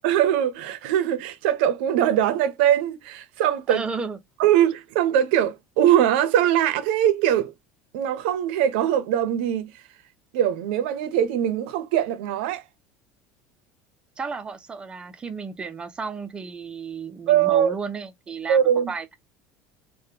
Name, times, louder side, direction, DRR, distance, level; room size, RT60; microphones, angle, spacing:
voice 1, 0.0-3.8 4.4-7.5 7.9-9.7 10.3-12.6 17.3-17.7 18.5-18.9, right 10 dB, 85° right, 0.7 m, -21 dB
voice 2, 3.7-4.2 14.2-18.6 18.9-19.1, right 5 dB, 15° right, 0.5 m, -33 dB
3.4 x 2.2 x 2.7 m
cardioid pair, 150°, 6 cm